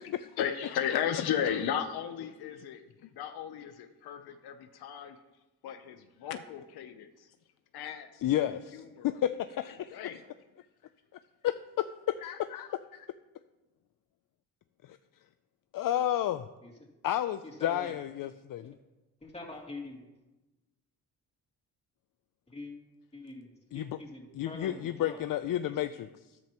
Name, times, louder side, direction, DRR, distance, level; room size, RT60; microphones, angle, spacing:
voice 1, 0.0-2.8 3.1-5.2 5.6-7.3 7.7-8.4 8.7-9.2 9.9-10.3, left 9 dB, 80° left, 8 dB, 0.9 m, -35 dB
voice 2, 8.2-8.8 9.4-10.0 11.4-11.5 12.1-13.1 14.9-15.0 15.7-16.5 17.0-18.8 23.7-24.0 24.3-26.4, left 12 dB, 60° left, 11 dB, 0.5 m, -32 dB
voice 3, 17.6-17.9 18.6-18.7 19.2-20.0 22.5-22.7 23.1-23.5 23.7-25.2 25.5-25.7, left 2 dB, 15° left, -1 dB, 2.9 m, -44 dB
13.0 x 10.5 x 3.0 m, 1.1 s
cardioid pair, 75°, 38 cm